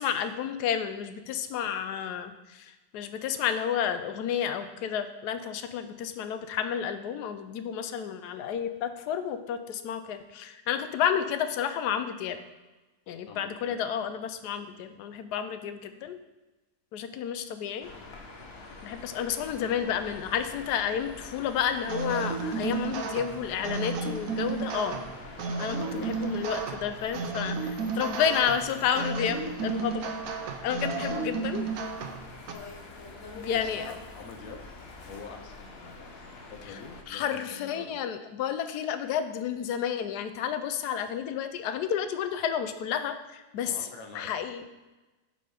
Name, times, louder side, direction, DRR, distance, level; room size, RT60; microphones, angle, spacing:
voice 1, 0.0-12.4 13.1-16.2 16.9-17.9 18.8-25.0 25.6-30.1 30.6-31.7 33.3-33.9 36.7-36.8 37.1-43.8 44.1-44.6, left 8 dB, 80° left, 10 dB, 1.2 m, -31 dB
voice 2, 13.3-13.8 14.7-14.9 25.7-26.2 31.1-31.3 33.5-34.6 35.1-38.0 43.6-44.4, left 4 dB, 60° left, 4 dB, 1.3 m, -46 dB
sound 1, 17.8-37.0, left 3 dB, 45° left, 0.9 m, -45 dB
sound 2, 21.9-32.5, right 4 dB, 65° right, 1.1 m, -33 dB
10.5 x 4.3 x 4.9 m, 1.1 s
omnidirectional pair, 1.7 m